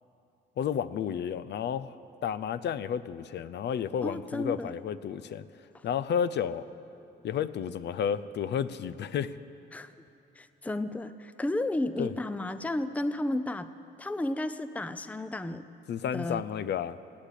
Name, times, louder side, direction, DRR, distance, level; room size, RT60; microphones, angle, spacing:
voice 1, 0.6-1.9 2.2-5.4 5.8-6.7 7.2-9.4 12.0-12.1 15.9-17.0, left 8 dB, 60° left, 15 dB, 0.6 m, -31 dB
voice 2, 4.0-4.7 9.7-9.9 10.4-13.7 14.0-15.7 16.1-16.4, left 1 dB, 5° left, 12 dB, 0.5 m, -32 dB
17.0 x 8.3 x 10.0 m, 2.8 s
cardioid pair, 90°, 20 cm